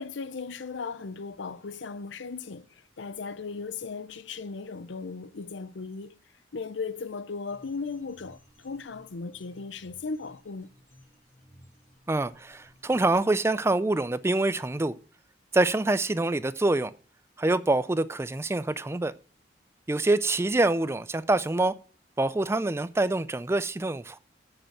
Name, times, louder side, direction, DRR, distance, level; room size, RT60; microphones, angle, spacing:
voice 1, 0.0-2.7 3.0-6.1 6.5-8.4 8.6-10.7, left 4 dB, 85° left, 0.7 m, -36 dB
sound 1, 7.5-13.1, equal, 15° left, 4.1 m, -57 dB
voice 2, 12.1-15.0 15.5-16.9 17.4-19.1 19.9-21.7 22.2-24.2, right 2 dB, 15° right, 0.4 m, -25 dB
8.8 x 7.7 x 6.5 m
head